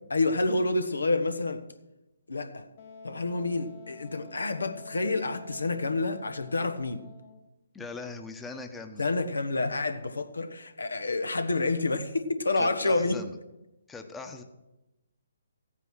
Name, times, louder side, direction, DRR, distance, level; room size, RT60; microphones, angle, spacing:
voice 1, 0.1-1.6 2.3-2.7 3.0-7.0 9.0-13.2, left 2 dB, 80° left, 1.3 m, -28 dB
Wind instrument woodwind instrument, 2.8-7.5, left 4 dB, 50° left, 1.5 m, -48 dB
voice 2, 7.7-9.1 12.6-13.4 13.9-14.4, left 3 dB, 10° left, 1.1 m, -40 dB
15.0 x 9.0 x 6.4 m
figure-of-eight pair, 140°, 0 cm